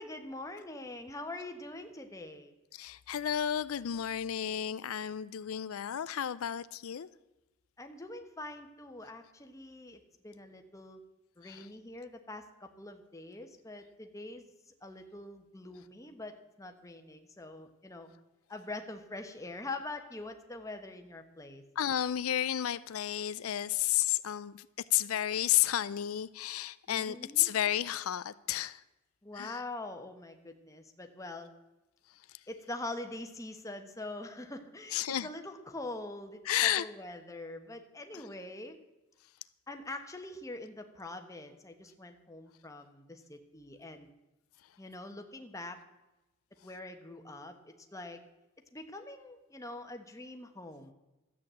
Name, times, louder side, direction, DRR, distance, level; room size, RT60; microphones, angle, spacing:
voice 1, 0.0-2.5 7.8-11.0 11.4-14.5 14.8-18.1 18.5-21.6 26.9-27.5 29.2-31.5 32.5-38.8 39.7-44.1 44.8-45.8 46.6-48.2 48.7-50.9, left 2 dB, 15° left, 1.1 m, -44 dB
voice 2, 2.7-7.1 11.4-11.7 21.8-28.8 29.3-29.6 32.3-32.4 34.9-35.3 36.4-36.9 38.1-38.3, left 11 dB, 85° left, 0.4 m, -32 dB
12.5 x 8.6 x 7.5 m
head